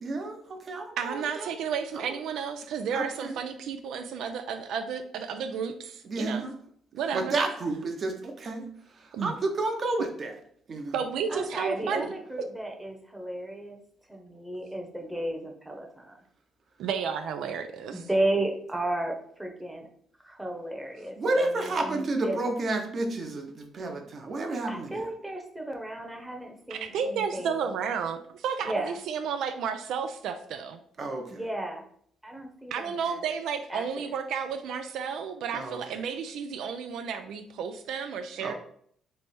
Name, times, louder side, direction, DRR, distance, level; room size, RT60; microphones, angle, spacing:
voice 1, 0.0-1.5 2.9-3.3 6.1-6.5 7.1-8.6 9.2-10.3 10.7-10.9 21.2-25.0 31.0-31.2 35.5-35.9 38.4-38.5, right 2 dB, 45° right, 4 dB, 0.8 m, -30 dB
voice 2, 1.0-6.4 6.9-7.4 9.1-9.3 10.9-12.1 16.8-18.1 26.7-30.8 32.7-38.5, right 6 dB, 80° right, 7 dB, 0.3 m, -32 dB
voice 3, 11.3-13.8 14.1-16.2 17.9-19.9 20.2-22.4 24.7-27.7 28.6-29.0 31.3-31.8 32.2-33.2 33.7-34.1, right 1 dB, 5° right, 2 dB, 0.9 m, -34 dB
3.3 x 3.2 x 4.3 m, 0.63 s
cardioid pair, 90°, 0 cm